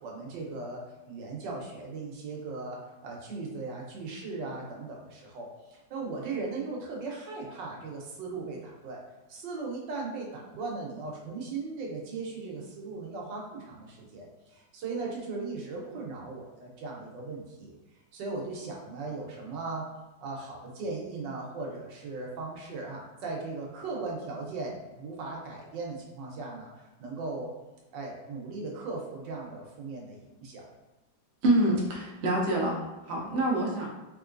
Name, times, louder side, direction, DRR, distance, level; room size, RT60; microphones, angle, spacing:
voice 1, 0.0-9.0 9.3-17.7 18.1-19.9 20.2-27.5 27.9-30.6, right 3 dB, 75° right, -1 dB, 1.4 m, -38 dB
voice 2, 31.4-33.9, right 1 dB, 55° right, -2 dB, 0.7 m, -26 dB
3.6 x 3.1 x 2.5 m, 1.1 s
omnidirectional pair, 2.0 m